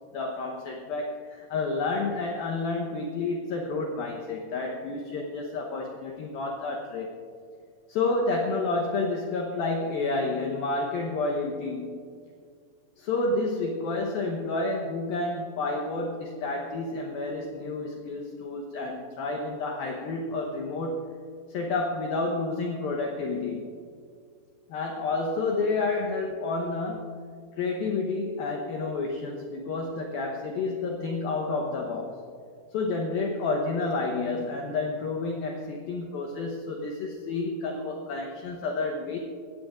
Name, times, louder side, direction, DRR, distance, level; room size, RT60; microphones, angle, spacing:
voice 1, 0.1-7.1 7.9-12.0 13.0-21.1 21.5-23.7 24.7-27.1 27.6-32.2 32.7-39.2, left 3 dB, 75° left, 1 dB, 2.4 m, -30 dB
23.5 x 17.5 x 2.5 m, 2.2 s
omnidirectional pair, 5.3 m